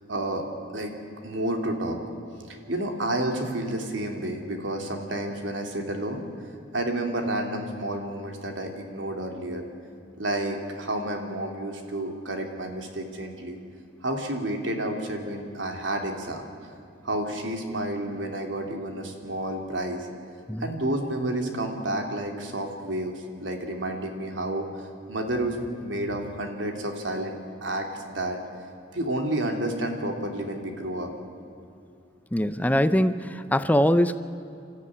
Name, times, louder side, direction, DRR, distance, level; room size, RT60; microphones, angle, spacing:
voice 1, 0.1-0.4 0.7-0.9 1.2-2.0 2.5-6.2 6.7-9.6 10.2-13.6 14.0-16.4 17.0-20.1 20.6-28.4 28.9-31.1, right 1 dB, 80° right, 3 dB, 3.0 m, -30 dB
voice 2, 32.3-34.2, equal, 10° left, 12 dB, 0.6 m, -22 dB
26.5 x 13.5 x 9.8 m, 2.6 s
head